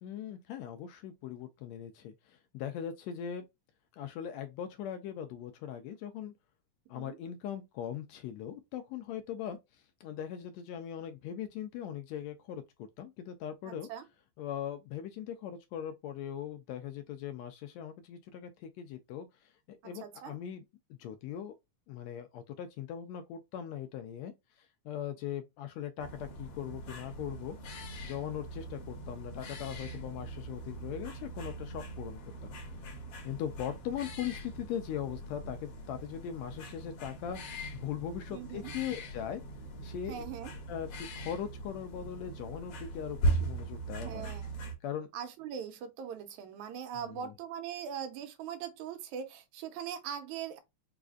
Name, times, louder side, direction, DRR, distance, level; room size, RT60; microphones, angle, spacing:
voice 1, 0.0-3.5 3.9-6.3 6.9-13.9 14.4-20.6 20.9-21.5 21.9-27.6 28.0-32.5 33.2-39.4 39.8-40.2 40.7-44.3 44.8-45.1 47.0-47.3, left 9 dB, 80° left, 1.6 m, -40 dB
voice 2, 13.7-14.0 20.0-20.3 38.3-38.7 40.1-40.5 44.0-44.4 45.1-50.6, right 8 dB, 80° right, 2.0 m, -41 dB
sound 1, 26.0-44.7, right 2 dB, 65° left, 1.8 m, -40 dB
4.9 x 2.5 x 2.3 m
omnidirectional pair, 3.4 m